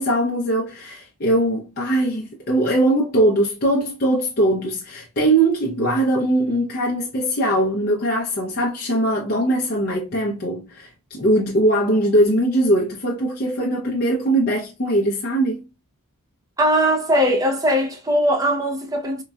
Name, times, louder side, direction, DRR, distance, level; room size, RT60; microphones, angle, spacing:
voice 1, 0.0-15.7, right 1 dB, 45° left, 0.5 m, -21 dB
voice 2, 16.6-19.2, equal, 15° right, 0.4 m, -20 dB
3.8 x 2.1 x 2.2 m
head